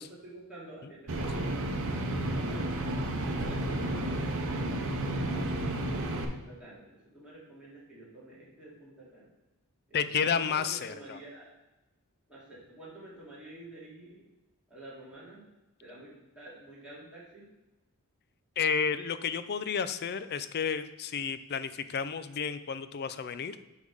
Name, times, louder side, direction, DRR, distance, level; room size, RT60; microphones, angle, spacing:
voice 1, 0.0-2.7 3.2-5.6 6.1-6.9 7.1-9.3 9.9-11.4 12.3-14.2 14.7-15.5 15.8-17.4, right 2 dB, 5° right, -10 dB, 2.6 m, -49 dB
sound 1, 1.1-6.3, right 1 dB, 60° right, 0.8 m, -31 dB
voice 2, 9.9-11.2 18.6-23.6, left 6 dB, 45° left, 12 dB, 0.4 m, -31 dB
8.1 x 3.6 x 4.8 m, 1.0 s
head